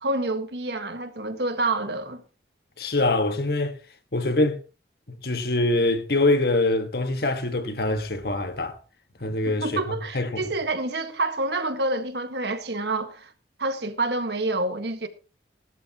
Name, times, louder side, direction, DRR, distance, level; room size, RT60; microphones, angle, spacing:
voice 1, 0.0-2.2 9.6-13.3 13.6-15.1, right 2 dB, 65° right, 1.6 m, -28 dB
voice 2, 2.8-3.8 4.1-4.6 5.1-8.8 9.2-10.5, left 2 dB, 55° left, 1.5 m, -24 dB
17.5 x 12.5 x 2.9 m
head